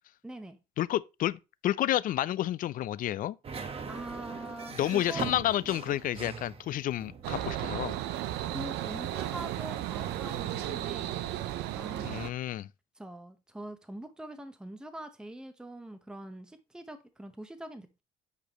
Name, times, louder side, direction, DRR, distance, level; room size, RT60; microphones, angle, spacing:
voice 1, 0.2-0.6 3.9-5.3 8.5-12.4 13.0-18.0, right 1 dB, 5° right, 0.8 m, -43 dB
voice 2, 0.8-3.4 4.8-8.0 12.0-12.7, left 13 dB, 55° left, 0.4 m, -30 dB
sound 1, 3.4-10.8, right 5 dB, 35° right, 1.0 m, -43 dB
sound 2, 7.2-12.3, right 13 dB, 85° right, 0.6 m, -34 dB
8.4 x 4.9 x 2.9 m
cardioid pair, 110°, 17 cm